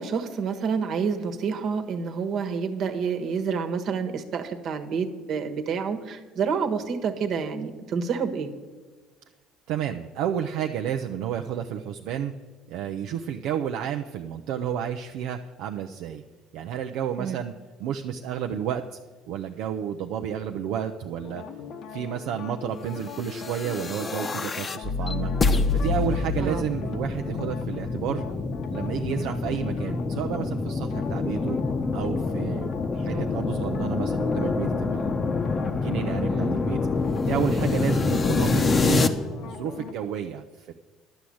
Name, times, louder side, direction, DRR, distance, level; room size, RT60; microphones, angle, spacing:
voice 1, 0.0-8.5 17.2-17.4 26.4-26.6 33.1-33.2 36.3-36.6, right 6 dB, 55° right, 6 dB, 1.3 m, -28 dB
voice 2, 9.7-12.3 12.7-16.2 16.5-17.5 17.8-19.0 19.3-21.4 21.9-25.3 25.7-28.2 28.7-31.6 31.9-35.2 35.8-36.8 37.2-39.1 39.4-40.7, right 9 dB, 75° right, 4 dB, 0.6 m, -31 dB
sound 1, 21.2-39.9, left 6 dB, 60° left, 1.0 m, -41 dB
sound 2, 23.3-39.1, left 4 dB, 30° left, 0.9 m, -26 dB
11.5 x 6.3 x 8.6 m, 1.4 s
supercardioid pair, 90°, 0 cm